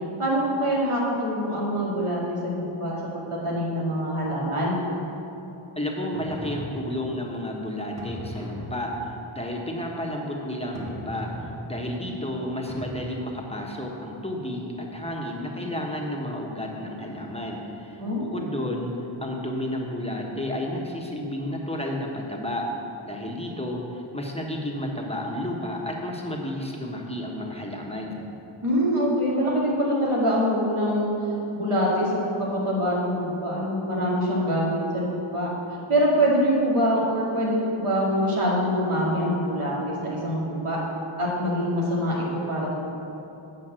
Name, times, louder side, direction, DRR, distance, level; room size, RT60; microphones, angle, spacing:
voice 1, 0.2-4.8 18.0-18.4 28.6-31.1 31.5-35.5 35.9-40.8 41.2-42.7, equal, 85° right, -5 dB, 2.2 m, -24 dB
voice 2, 5.8-11.4 11.6-18.9 19.2-22.7 23.0-28.2, left 1 dB, 10° left, -1 dB, 1.3 m, -31 dB
sound 1, 6.1-7.3 8.0-9.4 10.7-12.1 12.7-12.9, equal, 35° right, 1.5 m, -38 dB
8.6 x 5.3 x 7.6 m, 2.9 s
wide cardioid pair, 40°, 49 cm